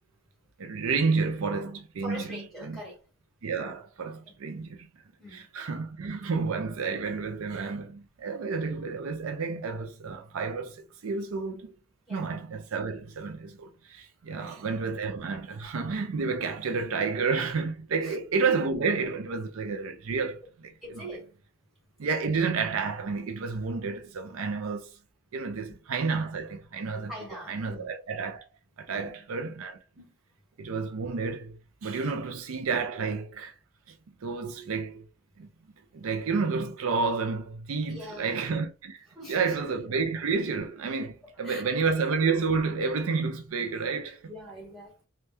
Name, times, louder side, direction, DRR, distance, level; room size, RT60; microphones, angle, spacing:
voice 1, 0.6-2.8 3.4-4.9 5.3-11.7 12.1-20.4 21.0-21.1 22.0-25.0 25.3-27.1 27.5-28.5 28.8-29.8 30.6-33.5 34.2-35.1 35.4-35.5 35.9-44.3, right 4 dB, 70° right, 0.5 m, -30 dB
voice 2, 2.0-3.0 4.2-4.3 5.2-5.5 12.1-12.3 14.3-14.6 18.0-18.2 20.8-21.3 25.6-25.7 27.0-27.9 28.9-29.1 29.9-30.1 37.9-38.5 39.1-39.6 41.2-41.6 44.3-45.1, equal, ahead, 1.7 m, -43 dB
3.3 x 2.3 x 2.7 m
head